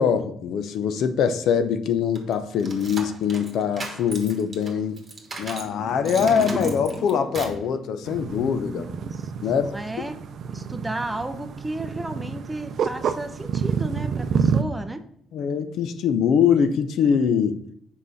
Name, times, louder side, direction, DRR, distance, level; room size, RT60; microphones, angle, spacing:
voice 1, 0.0-5.0 5.4-8.9 9.4-9.8 15.3-17.6, left 7 dB, 75° left, 0.6 m, -23 dB
sound 1, 2.2-5.7 6.1-7.7, right 3 dB, 35° right, 1.4 m, -37 dB
sound 2, 5.3-8.4, equal, 5° left, 0.9 m, -34 dB
sound 3, 8.0-14.6, right 6 dB, 60° right, 0.5 m, -28 dB
voice 2, 8.6-10.2 10.5-15.0, right 2 dB, 10° right, 0.6 m, -33 dB
5.4 x 4.8 x 4.0 m
cardioid pair, 100°, 0 cm